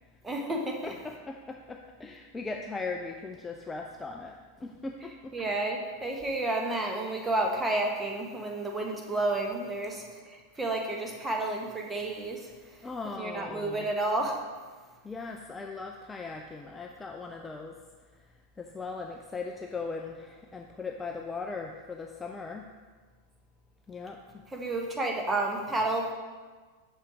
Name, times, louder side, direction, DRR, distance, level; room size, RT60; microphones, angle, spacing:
voice 1, 0.2-0.8 5.3-10.0 10.3-12.4 13.2-14.4 24.5-26.1, right 2 dB, 10° right, 1 dB, 1.1 m, -30 dB
voice 2, 0.8-5.4 12.8-13.9 15.0-17.8 18.2-18.3 18.6-22.7 23.9-24.4, left 4 dB, 15° left, 2 dB, 0.4 m, -39 dB
6.4 x 5.6 x 4.7 m, 1.4 s
figure-of-eight pair, 90°, 0 cm